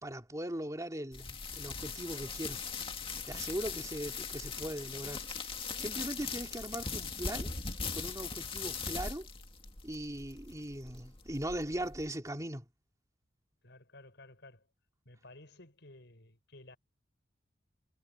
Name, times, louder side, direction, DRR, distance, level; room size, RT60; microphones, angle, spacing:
voice 1, 0.0-2.6 3.3-5.2 5.8-7.5 7.9-9.3 9.8-12.7, right 1 dB, 20° right, 2.8 m, -39 dB
sound 1, 1.1-12.1, left 5 dB, 30° left, 2.1 m, -40 dB
voice 2, 13.6-14.7 15.0-16.8, left 2 dB, 65° left, 7.9 m, -55 dB
head